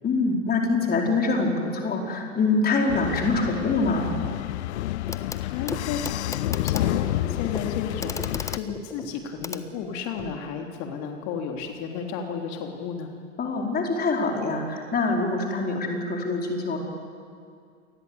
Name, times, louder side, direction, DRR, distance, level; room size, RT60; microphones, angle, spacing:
voice 1, 0.0-4.1 13.4-16.8, left 3 dB, 25° left, 1 dB, 4.5 m, -25 dB
sound 1, 2.9-8.6, left 15 dB, 60° left, 0.6 m, -29 dB
Clock, 5.1-5.4 5.7-10.4 11.6-11.7, left 3 dB, 10° left, 1.2 m, -37 dB
voice 2, 5.4-13.1, left 6 dB, 45° left, 3 dB, 3.3 m, -33 dB
28.5 x 23.5 x 8.2 m, 2.3 s
figure-of-eight pair, 95°, 39 cm